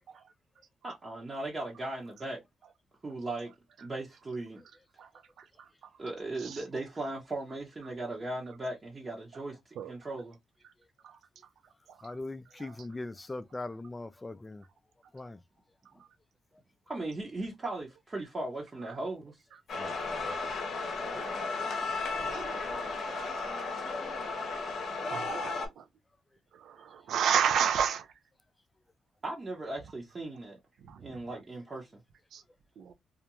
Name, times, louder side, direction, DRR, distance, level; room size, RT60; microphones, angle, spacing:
voice 1, 0.8-2.4 3.0-3.5 3.8-4.6 6.0-9.6 9.9-10.4 16.9-19.4 21.1-21.4 29.2-30.6 31.0-31.9, right 2 dB, 30° right, 0.8 m, -38 dB
voice 2, 12.0-14.6 15.1-15.4 19.8-20.5, left 2 dB, 20° left, 0.3 m, -41 dB
sound 1, 19.7-25.7, left 3 dB, 65° left, 0.7 m, -34 dB
voice 3, 22.1-23.8 25.0-25.8 26.6-28.1 30.9-31.0 32.3-32.4 32.8-32.9, right 8 dB, 80° right, 0.4 m, -32 dB
2.4 x 2.2 x 2.9 m
cardioid pair, 85°, 0 cm